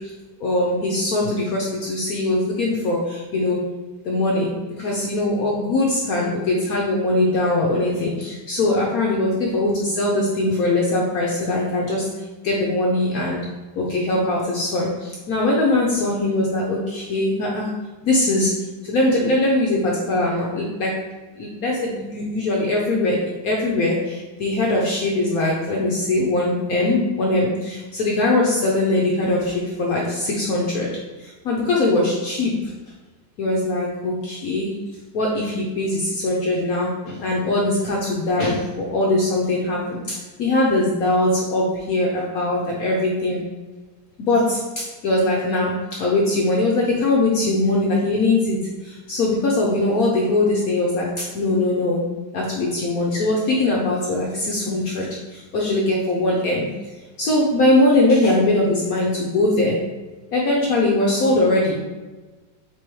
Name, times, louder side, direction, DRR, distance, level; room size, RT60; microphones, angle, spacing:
voice 1, 0.4-3.6 4.1-4.5 4.8-12.0 12.4-13.4 13.8-14.9 15.3-17.7 18.0-18.5 18.9-20.9 21.4-23.2 23.4-30.9 31.4-32.5 33.4-34.7 35.1-43.4 44.2-45.7 46.0-48.6 49.1-51.1 51.3-52.0 52.3-55.1 55.5-56.7 57.2-59.8 60.3-61.8, left 2 dB, 70° left, -2 dB, 0.8 m, -21 dB
4.6 x 3.7 x 3.0 m, 1.2 s
omnidirectional pair, 2.2 m